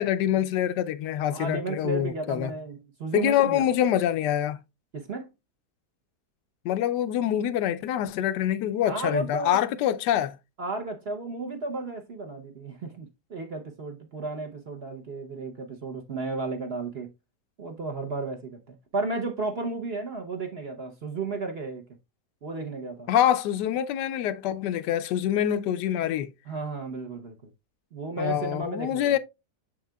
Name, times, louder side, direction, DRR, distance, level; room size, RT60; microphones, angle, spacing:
voice 1, 0.0-2.5 3.1-4.6 6.6-10.4 23.1-26.3 28.2-29.2, left 11 dB, 85° left, 1.2 m, -25 dB
voice 2, 1.3-3.6 4.9-5.3 8.8-9.6 10.6-17.1 17.6-18.6 18.9-21.8 22.4-23.1 26.5-27.5 27.9-29.1, right 3 dB, 45° right, 0.9 m, -33 dB
7.4 x 6.1 x 2.2 m
omnidirectional pair, 1.8 m